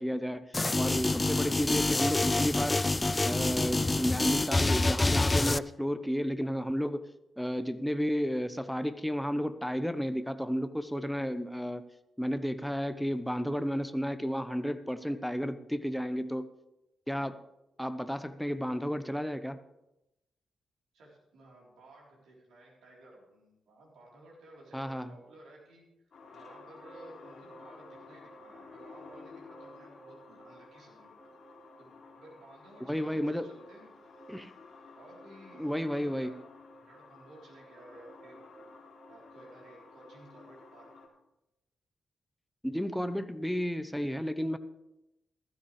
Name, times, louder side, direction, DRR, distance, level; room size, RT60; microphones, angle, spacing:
voice 1, 0.0-2.9 3.2-7.0 7.4-11.9 12.2-16.5 17.1-17.4 17.8-19.6 24.7-25.1 32.8-33.5 34.3-34.5 35.6-36.4 42.6-44.6, equal, ahead, 11 dB, 0.9 m, -32 dB
sound 1, 0.5-5.6, left 2 dB, 25° left, 0.4 m, -27 dB
voice 2, 20.9-31.1 31.8-33.9 34.9-36.4 36.7-38.5 39.1-40.9, right 2 dB, 75° right, -3 dB, 3.9 m, -55 dB
sound 2, 26.1-41.1, left 2 dB, 60° left, 2.9 m, -52 dB
15.0 x 13.0 x 3.3 m, 0.93 s
hypercardioid pair, 40°, 0 cm